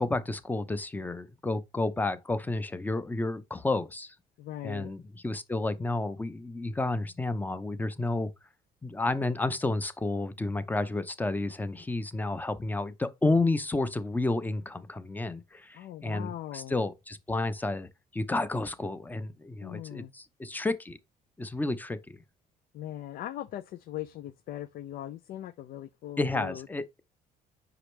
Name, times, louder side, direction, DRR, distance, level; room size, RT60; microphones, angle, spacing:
voice 1, 0.0-4.1 4.6-8.3 8.8-21.0 21.4-22.2 26.2-27.0, left 2 dB, 10° left, 0.7 m, -31 dB
voice 2, 4.4-4.9 15.7-16.7 19.6-20.1 22.7-26.7, left 12 dB, 60° left, 0.4 m, -40 dB
6.1 x 4.9 x 3.2 m
cardioid pair, 110°, 17 cm